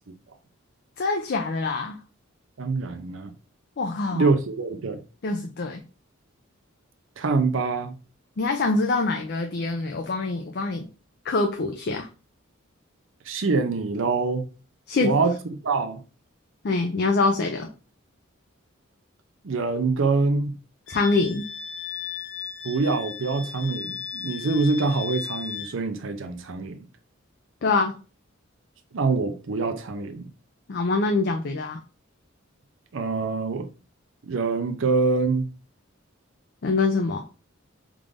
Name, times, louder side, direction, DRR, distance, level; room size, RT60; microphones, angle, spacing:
voice 1, 1.0-2.0 3.8-4.3 5.2-5.8 8.4-10.9 11.2-12.1 14.9-15.2 16.6-17.7 20.9-21.4 27.6-28.0 30.7-31.8 36.6-37.2, left 3 dB, 50° left, 0.4 m, -24 dB
voice 2, 2.6-3.3 4.1-5.0 7.2-7.9 13.3-14.4 15.0-15.4 15.6-16.0 19.4-20.5 22.6-26.8 28.9-30.3 32.9-33.7 34.2-35.5, right 3 dB, 65° right, 0.6 m, -25 dB
Wind instrument woodwind instrument, 20.9-25.8, left 7 dB, 70° left, 1.0 m, -36 dB
3.7 x 2.5 x 3.2 m
head